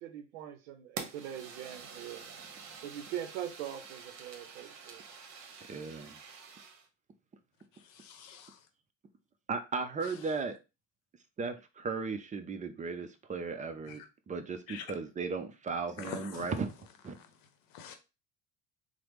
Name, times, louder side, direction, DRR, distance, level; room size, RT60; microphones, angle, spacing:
voice 1, 0.0-2.2 2.8-5.0, right 10 dB, 80° right, 0.6 m, -42 dB
Fire, 1.0-6.9, right 6 dB, 45° right, 0.9 m, -47 dB
voice 2, 5.7-6.2 9.5-10.6 11.4-16.7 17.0-17.1, right 4 dB, 20° right, 0.4 m, -36 dB
voice 3, 7.9-8.6 13.9-14.0 14.7-14.8 16.0-16.5 17.1-17.3 17.7-18.0, left 7 dB, 65° left, 0.8 m, -45 dB
3.2 x 2.0 x 3.0 m
supercardioid pair, 85°, 38 cm